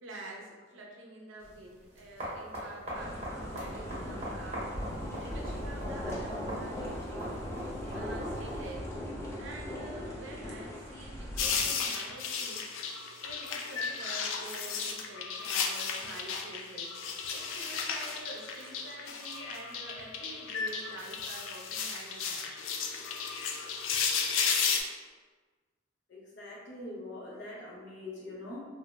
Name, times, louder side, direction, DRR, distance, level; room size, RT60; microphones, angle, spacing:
voice 1, 0.0-4.8 5.2-7.4 7.9-8.9 9.4-12.7 13.2-16.9 17.3-22.5, right 2 dB, 75° right, -1 dB, 0.6 m, -47 dB
sound 1, 1.4-8.7, equal, 35° right, 0.9 m, -42 dB
sound 2, 2.9-11.7, left 1 dB, 15° left, 0.4 m, -39 dB
sound 3, 11.4-24.8, left 6 dB, 85° left, 0.3 m, -34 dB
voice 2, 26.1-28.6, left 2 dB, 60° left, -5 dB, 0.8 m, -43 dB
2.6 x 2.0 x 3.4 m, 1.4 s
head